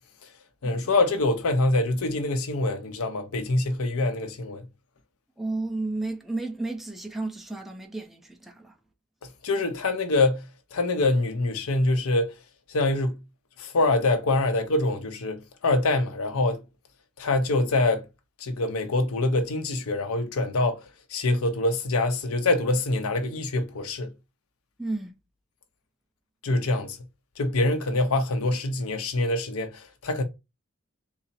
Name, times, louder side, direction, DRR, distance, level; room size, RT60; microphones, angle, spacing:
voice 1, 0.6-4.7 9.4-10.5 10.7-12.3 12.7-13.2 13.6-16.6 17.2-18.0 18.4-20.8 21.1-24.1 26.4-27.0 27.4-30.2, left 2 dB, 80° left, 0.7 m, -25 dB
voice 2, 5.4-8.7 24.8-25.1, right 2 dB, ahead, 0.6 m, -32 dB
4.0 x 2.0 x 4.1 m
head